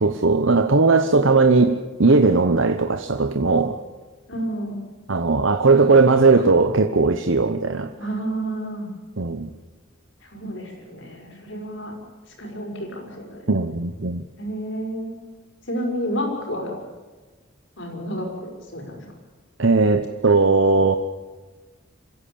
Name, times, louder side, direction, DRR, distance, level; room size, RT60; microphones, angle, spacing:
voice 1, 0.0-3.8 5.1-7.9 9.2-9.5 13.5-14.2 19.6-21.0, right 3 dB, 65° right, 7 dB, 1.0 m, -18 dB
voice 2, 4.3-4.8 8.0-8.9 10.3-12.0 12.4-13.5 14.4-15.1 15.7-16.7 17.8-19.1, equal, 60° left, 1 dB, 5.9 m, -30 dB
26.5 x 15.5 x 8.7 m, 1.3 s
head